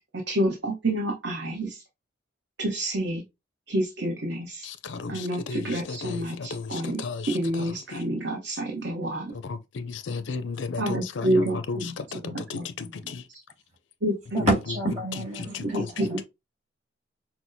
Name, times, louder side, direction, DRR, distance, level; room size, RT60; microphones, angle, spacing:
voice 1, 0.3-1.8 2.6-3.2 3.7-4.7 5.1-7.0 7.3-9.3 10.8-11.9 12.2-12.6 14.0-14.4 15.6-16.2, right 1 dB, 60° right, 0.9 m, -28 dB
voice 2, 4.6-8.0 9.3-13.2 14.4-14.5 15.4-16.2, left 4 dB, 75° left, 0.4 m, -34 dB
voice 3, 14.3-16.2, right 1 dB, 35° right, 2.0 m, -28 dB
5.9 x 2.0 x 2.6 m
head